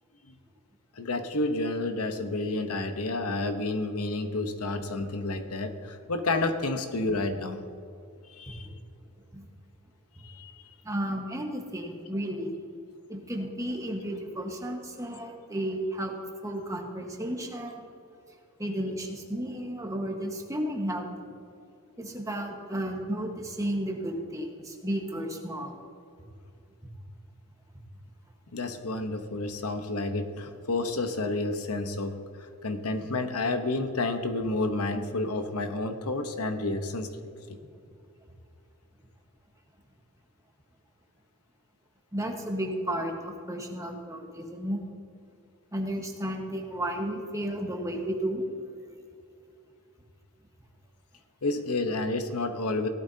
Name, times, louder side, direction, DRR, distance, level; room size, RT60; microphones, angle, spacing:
voice 1, 0.9-7.7 8.3-8.7 10.2-10.5 28.5-37.1 51.4-52.9, left 2 dB, 75° left, 7 dB, 1.0 m, -30 dB
voice 2, 10.8-12.5 13.1-16.1 16.4-17.8 18.6-21.3 22.0-25.7 42.1-44.8 45.7-48.4, right 1 dB, 15° right, 1 dB, 1.4 m, -33 dB
17.0 x 12.0 x 2.8 m, 2.5 s
head